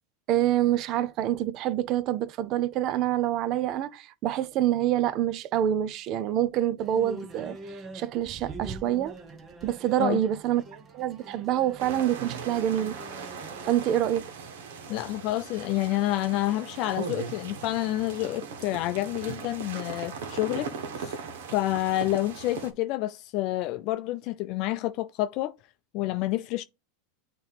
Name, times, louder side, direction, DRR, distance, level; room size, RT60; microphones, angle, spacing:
voice 1, 0.3-9.1 9.6-10.6 10.9-13.0 13.6-14.2, right 12 dB, 40° right, 0.5 m, -26 dB
sound 1, 6.8-13.7, right 3 dB, 25° right, 1.0 m, -44 dB
sound 2, 11.8-22.7, right 5 dB, 80° right, 1.4 m, -39 dB
voice 2, 14.9-21.2 21.5-25.5 25.9-26.6, left 16 dB, 45° left, 0.5 m, -29 dB
8.9 x 3.0 x 3.4 m
supercardioid pair, 145°, 0 cm